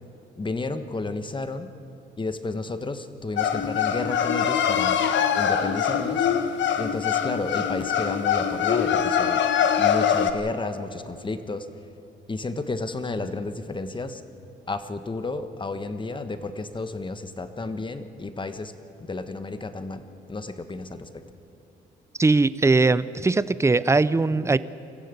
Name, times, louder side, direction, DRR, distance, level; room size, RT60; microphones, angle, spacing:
voice 1, 0.3-1.7 2.2-5.1 5.3-6.3 6.8-9.4 9.8-11.7 12.3-14.2 14.7-18.7 19.0-21.2, left 3 dB, 25° left, 10 dB, 1.3 m, -32 dB
sound 1, 3.4-10.3, left 8 dB, 70° left, 1.2 m, -23 dB
voice 2, 22.2-24.6, right 3 dB, 15° right, 17 dB, 0.6 m, -20 dB
24.5 x 14.5 x 8.3 m, 2.7 s
cardioid pair, 90°, 20 cm